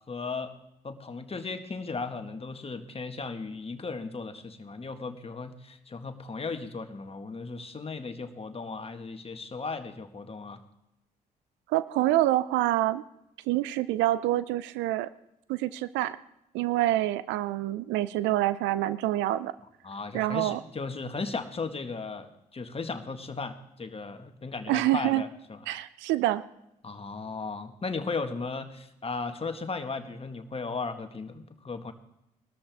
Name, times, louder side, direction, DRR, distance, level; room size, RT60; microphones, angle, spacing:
voice 1, 0.1-0.5 0.8-10.6 19.8-25.6 26.8-31.9, left 4 dB, 30° left, 8 dB, 1.7 m, -36 dB
voice 2, 11.7-13.0 13.5-15.1 15.5-16.2 16.5-19.5 20.1-20.6 24.7-25.2 25.7-26.4, right 15 dB, 70° right, 16 dB, 0.6 m, -26 dB
19.5 x 13.0 x 3.6 m, 0.83 s
hypercardioid pair, 45°, 20 cm